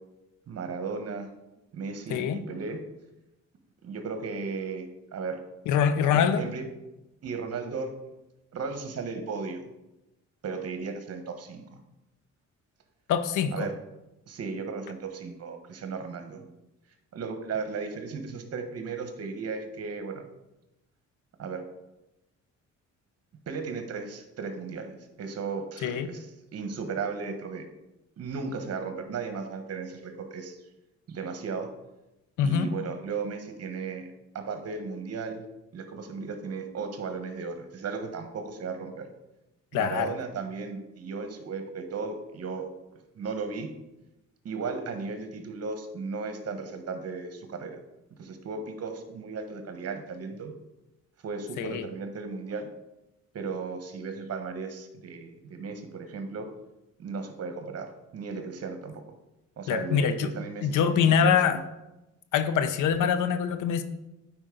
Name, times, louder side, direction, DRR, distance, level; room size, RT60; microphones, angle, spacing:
voice 1, 0.5-1.3 1.7-2.8 3.8-5.4 6.1-6.6 7.2-7.9 8.5-9.7 10.4-11.6 13.5-13.7 14.3-16.4 17.1-20.2 21.4-21.6 23.5-26.3 26.5-27.6 28.2-30.6 31.1-31.7 32.4-34.1 34.3-35.4 35.7-39.1 39.7-42.7 43.1-43.7 44.4-47.8 48.2-50.5 51.2-52.7 53.3-56.5 57.0-59.0 59.6-61.6, right 4 dB, 55° right, 6 dB, 1.2 m, -35 dB
voice 2, 2.1-2.4 5.7-6.4 13.1-13.5 25.8-26.1 32.4-32.7 39.7-40.1 51.6-51.9 59.7-60.3 60.6-61.6 62.3-63.8, left 7 dB, 85° left, 10 dB, 0.7 m, -24 dB
9.0 x 5.1 x 3.8 m, 0.95 s
cardioid pair, 90°, 30 cm